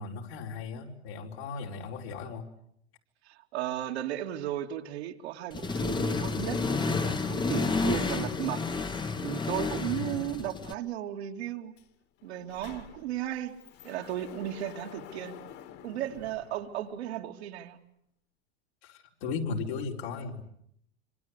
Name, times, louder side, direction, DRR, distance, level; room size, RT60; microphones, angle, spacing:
voice 1, 0.0-2.5 9.9-10.1 18.8-20.4, left 4 dB, 75° left, 1 dB, 4.7 m, -36 dB
voice 2, 3.3-8.6 9.2-11.7 12.2-13.6 13.8-15.4 15.8-17.8, right 12 dB, 75° right, 3 dB, 2.6 m, -35 dB
Accelerating revving vroom, 5.5-10.7, left 4 dB, 15° left, 1.2 m, -30 dB
Sliding door, 11.8-11.9 12.2-17.2, left 10 dB, 50° left, 2.8 m, -49 dB
26.5 x 25.0 x 8.2 m, 0.73 s
hypercardioid pair, 115°, 32 cm